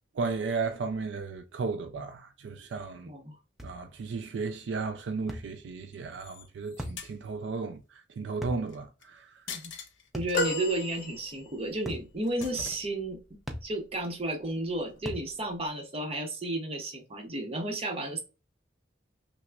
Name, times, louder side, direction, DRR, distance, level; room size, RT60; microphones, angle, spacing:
voice 1, 0.2-3.1 3.6-7.8 8.2-9.4, right 4 dB, 70° right, 0.4 m, -34 dB
voice 2, 3.0-3.4 9.5-9.7 10.1-13.2 13.6-18.2, right 1 dB, 35° right, 0.8 m, -33 dB
sound 1, 3.6-3.8 5.3-5.5 6.8-7.0 8.4-8.7 10.1-10.4 11.9-12.1 13.5-13.7 15.1-15.3, equal, ahead, 0.5 m, -38 dB
sound 2, 5.9-7.1 8.7-9.0 9.5-10.4 10.8-11.3 11.7-13.2 13.5-13.6, left 6 dB, 80° left, 0.6 m, -45 dB
sound 3, 10.3-11.7 12.5-12.6, left 1 dB, 45° left, 0.9 m, -32 dB
5.7 x 2.0 x 2.3 m
head